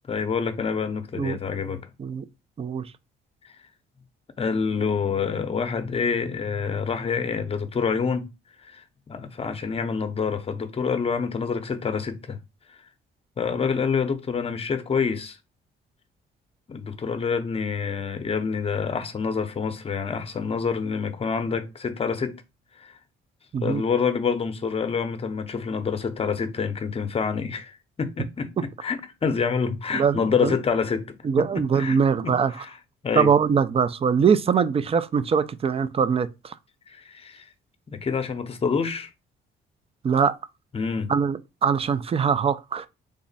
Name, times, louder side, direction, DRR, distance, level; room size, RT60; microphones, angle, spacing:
voice 1, 0.1-1.9 4.4-8.3 8.6-12.4 12.7-12.8 13.4-15.4 16.7-22.4 22.8-23.0 23.6-32.8 33.0-33.3 36.9-37.5 37.9-39.1 40.7-41.1, left 5 dB, 30° left, 0.6 m, -27 dB
voice 2, 29.9-30.5 31.2-32.5 33.1-36.5 40.0-40.3 41.1-42.9, right 6 dB, 30° right, 0.4 m, -22 dB
3.5 x 2.0 x 3.9 m
cardioid pair, 90°, 20 cm